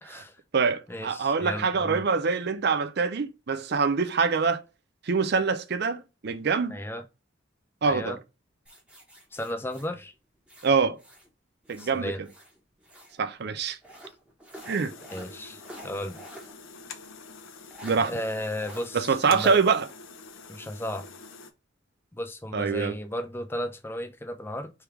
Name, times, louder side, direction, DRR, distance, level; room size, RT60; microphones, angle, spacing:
voice 1, 0.0-0.4 0.9-2.0 6.7-7.0 7.8-8.2 9.3-10.1 11.8-12.2 15.1-16.2 18.0-19.6 20.5-21.1 22.1-24.7, left 1 dB, 10° left, 0.5 m, -34 dB
voice 2, 0.5-4.6 5.0-6.8 7.8-8.2 10.6-11.0 11.7-12.1 13.2-13.8 14.7-14.9 17.8-18.1 18.9-19.9 22.5-22.9, right 5 dB, 55° right, 0.5 m, -25 dB
sound 1, 8.7-11.3 11.6-13.2 13.8-16.6 16.9-17.0 17.7-18.0 18.6-18.9 19.3-19.6, right 1 dB, 5° right, 1.2 m, -48 dB
sound 2, 14.5-21.5, left 4 dB, 90° left, 0.7 m, -46 dB
3.5 x 3.4 x 4.5 m
head